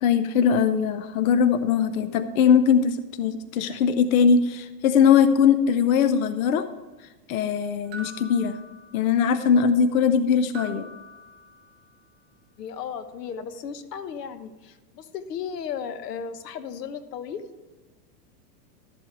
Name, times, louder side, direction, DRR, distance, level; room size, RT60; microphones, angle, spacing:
voice 1, 0.0-6.7 7.3-8.6 8.9-10.9, left 7 dB, 60° left, 11 dB, 0.7 m, -21 dB
sound 1, 7.9-9.4 10.5-12.0, right 1 dB, 35° right, 1.8 m, -44 dB
voice 2, 12.6-17.5, left 7 dB, 90° left, 11 dB, 1.1 m, -35 dB
12.5 x 7.7 x 4.7 m, 1.2 s
supercardioid pair, 160°, 47 cm